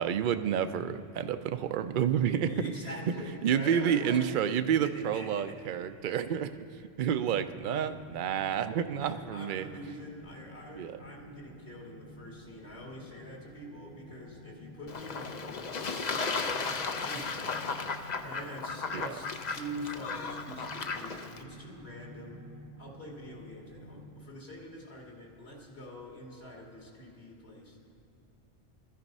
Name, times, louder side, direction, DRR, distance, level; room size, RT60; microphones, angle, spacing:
voice 1, 0.0-2.7 3.1-3.2 3.4-6.6 7.0-9.7 10.7-11.0 18.9-19.2, right 8 dB, 55° right, 11 dB, 0.7 m, -29 dB
voice 2, 2.5-4.2 5.1-5.5 9.0-17.7 18.2-22.5 22.8-27.8, equal, 60° left, -2 dB, 2.8 m, -45 dB
sound 1, 7.1-24.1, equal, 90° right, 1.6 m, -51 dB
Fowl / Bird / Water, 14.9-21.4, left 4 dB, 45° left, 0.7 m, -35 dB
16.0 x 13.5 x 5.4 m, 2.8 s
omnidirectional pair, 1.1 m